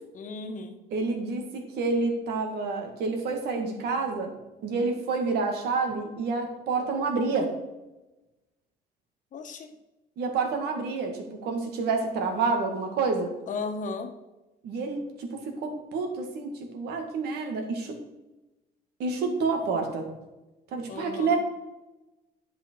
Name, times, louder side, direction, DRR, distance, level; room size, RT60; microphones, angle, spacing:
voice 1, 0.1-0.8 9.3-9.7 13.5-14.1 20.9-21.4, left 4 dB, 50° left, 6 dB, 1.3 m, -35 dB
voice 2, 0.9-4.4 4.6-7.6 10.2-13.3 14.6-18.0 19.0-20.1 20.7-21.4, right 4 dB, 75° right, 3 dB, 1.9 m, -28 dB
10.0 x 5.5 x 4.6 m, 1.0 s
cardioid pair, 110°, 17 cm